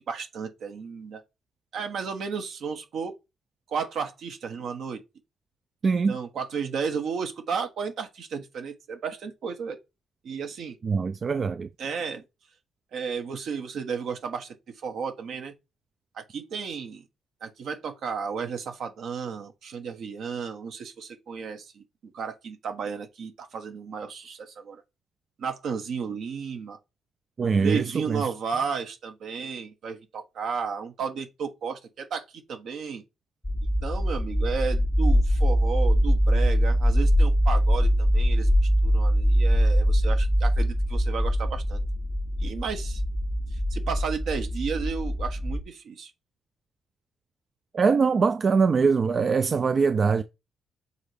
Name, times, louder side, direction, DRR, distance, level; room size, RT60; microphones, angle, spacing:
voice 1, 0.1-1.2 1.7-3.1 3.7-5.0 6.1-9.8 10.2-10.8 11.8-12.2 12.9-15.5 16.1-17.1 17.4-21.8 22.1-24.8 25.4-26.8 27.6-33.0 33.8-38.5 38.8-41.8 42.4-43.0 43.5-46.1, right 6 dB, 70° right, 1.2 m, -33 dB
voice 2, 5.8-6.2 10.8-11.7 27.4-28.2 47.7-50.2, right 5 dB, 40° right, 0.4 m, -23 dB
sound 1, 33.4-45.6, equal, 15° left, 0.5 m, -23 dB
6.8 x 4.1 x 3.4 m
cardioid pair, 90°, 0 cm